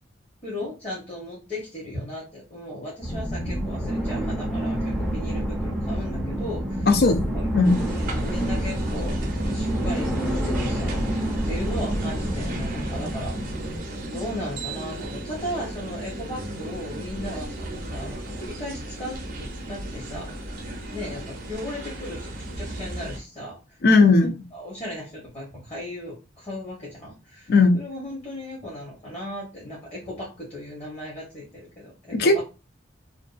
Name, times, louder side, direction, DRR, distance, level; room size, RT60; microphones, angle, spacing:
voice 1, 0.4-6.9 7.3-7.5 7.8-9.2 9.5-11.0 11.4-13.5 14.0-20.3 20.9-23.6 24.2-32.4, left 1 dB, 30° left, 0.9 m, -36 dB
sound 1, 3.0-13.8, right 1 dB, ahead, 0.5 m, -28 dB
voice 2, 6.9-7.3 7.5-7.8 23.8-24.3 27.5-27.8 32.1-32.4, left 3 dB, 55° left, 0.4 m, -17 dB
sound 2, 7.6-23.2, right 1 dB, 45° right, 0.5 m, -35 dB
2.6 x 2.2 x 2.4 m
head